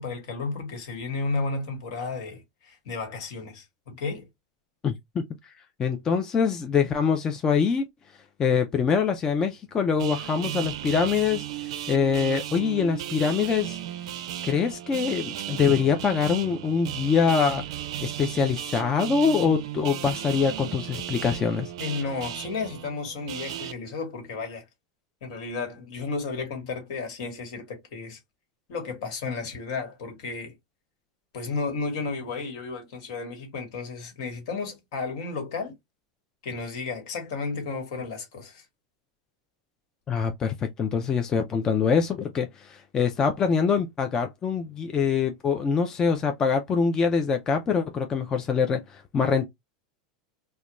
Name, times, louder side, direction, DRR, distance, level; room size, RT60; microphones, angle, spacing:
voice 1, 0.0-4.3 21.8-24.6 25.2-28.2 28.7-30.5 31.3-35.7 36.4-38.6, left 4 dB, 65° left, 1.3 m, -33 dB
voice 2, 5.8-7.9 8.4-11.4 11.9-13.8 14.4-17.6 18.0-21.7 40.1-49.5, left 6 dB, 20° left, 0.3 m, -24 dB
sound 1, 10.0-23.7, right 12 dB, 75° right, 0.4 m, -35 dB
2.4 x 2.2 x 2.9 m
supercardioid pair, 145°, 3 cm